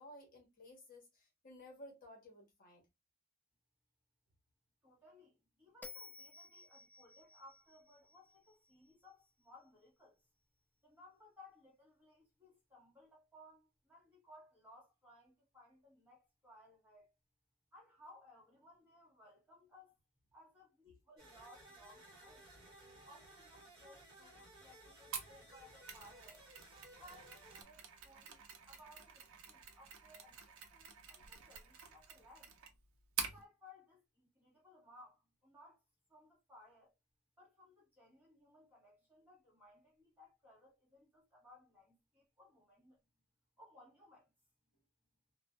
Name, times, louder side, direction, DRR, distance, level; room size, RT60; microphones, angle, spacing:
voice 1, 0.0-2.8, left 1 dB, 40° left, 1.0 m, -56 dB
voice 2, 4.8-10.2 10.8-17.1 17.7-19.9 20.3-22.5 23.1-26.5 26.9-30.4 30.7-32.5 33.2-34.0 34.3-35.8 36.1-36.9 37.4-43.0 43.6-44.3, left 1 dB, 10° right, 1.2 m, -62 dB
Bell, 5.8-9.1, left 3 dB, 10° left, 0.3 m, -56 dB
sound 1, 21.2-27.6, right 1 dB, 25° right, 1.5 m, -59 dB
Mechanisms, 25.1-33.4, right 7 dB, 75° right, 0.5 m, -48 dB
2.5 x 2.2 x 2.2 m
head